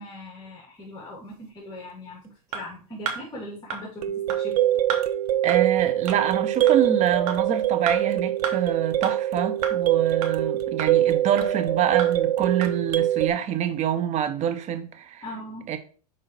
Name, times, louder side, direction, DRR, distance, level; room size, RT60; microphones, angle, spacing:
voice 1, 0.0-4.0 4.4-4.6 15.2-15.7, left 1 dB, 20° left, 2.7 m, -39 dB
sound 1, 2.5-2.6 3.1-3.2 3.7-3.8 4.3-4.4 4.9-5.0 5.5-5.6 6.1-6.2 6.7-6.8 7.3-7.4 7.9-8.0 8.4-8.5 9.0-9.1 9.6-9.7 10.2-10.3 10.8-10.9 11.4-11.5 12.0-12.1 12.6-12.7, right 7 dB, 60° right, 1.9 m, -30 dB
sound 2, 4.0-13.3, right 12 dB, 75° right, 0.7 m, -23 dB
voice 2, 5.4-15.2 15.7-15.8, right 9 dB, 35° right, 1.1 m, -26 dB
6.5 x 4.6 x 4.5 m
hypercardioid pair, 105°, 20 cm